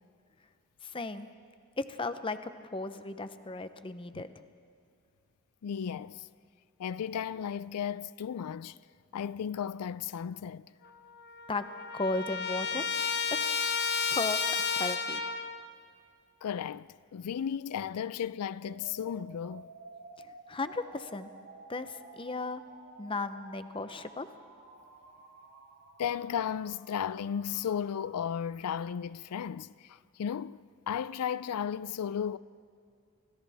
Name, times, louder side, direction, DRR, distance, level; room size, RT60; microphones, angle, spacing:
voice 1, 0.8-1.3 1.8-4.4 11.5-11.7 11.9-12.8 13.3-13.7 14.1-14.4 14.8-15.2 20.5-21.3 21.7-22.6 23.0-24.3, left 3 dB, 25° left, 0.7 m, -35 dB
voice 2, 5.6-6.3 6.8-8.8 9.1-10.7 16.4-19.7 26.0-30.6 30.9-32.4, left 8 dB, 85° left, 0.4 m, -35 dB
Trumpet, 10.8-10.9 11.2-15.6, left 5 dB, 45° left, 1.0 m, -32 dB
sound 1, 18.6-28.6, right 3 dB, 80° right, 5.3 m, -53 dB
30.0 x 25.0 x 3.5 m
head